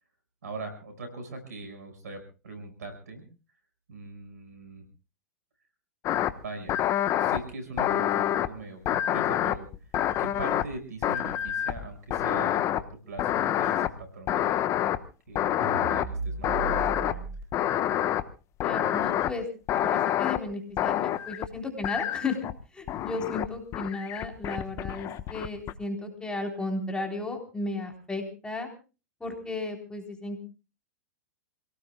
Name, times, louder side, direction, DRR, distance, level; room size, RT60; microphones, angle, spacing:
voice 1, 0.4-3.3 3.9-4.9 6.4-6.8 7.2-9.7 10.2-14.6 15.3-17.3, right 3 dB, 80° right, 7 dB, 5.5 m, -41 dB
sound 1, 6.0-6.3 6.7-7.4 7.8-8.5 8.9-10.7 11.0-11.9 12.1-12.8 13.2-13.9 14.3-15.0 15.3-16.1 16.4-17.1 17.5-18.2 18.6-19.3 19.7-20.4 20.8-21.5 21.8-22.5 22.9-23.5 23.7-25.7, left 12 dB, 35° left, 1.1 m, -27 dB
sound 2, 15.6-17.4, right 4 dB, 55° right, 2.2 m, -35 dB
voice 2, 18.6-19.5 19.7-22.4 22.7-28.7 29.2-30.4, left 3 dB, 10° left, 2 dB, 3.7 m, -34 dB
27.5 x 18.0 x 2.3 m, 0.32 s
hypercardioid pair, 105°, 9 cm